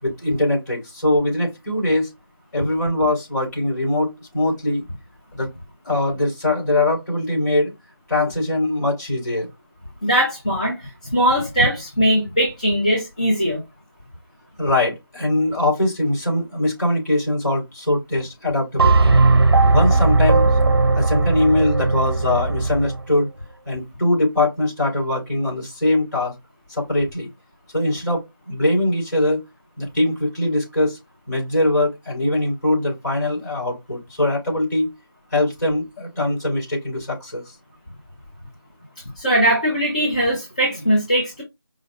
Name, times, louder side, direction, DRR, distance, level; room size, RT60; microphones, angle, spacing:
voice 1, 0.0-2.1 2.5-4.8 5.3-5.5 5.8-7.7 8.1-9.5 14.6-19.1 19.7-20.5 20.9-23.3 23.6-26.3 26.7-27.3 27.7-29.4 29.8-31.0 31.3-34.9 35.3-37.4, left 1 dB, 45° left, 3.4 m, -22 dB
voice 2, 10.0-13.6 39.2-41.4, equal, 20° left, 0.6 m, -20 dB
sound 1, 18.8-23.0, right 3 dB, 85° right, 0.5 m, -17 dB
4.9 x 2.3 x 3.9 m
figure-of-eight pair, 170°, 13 cm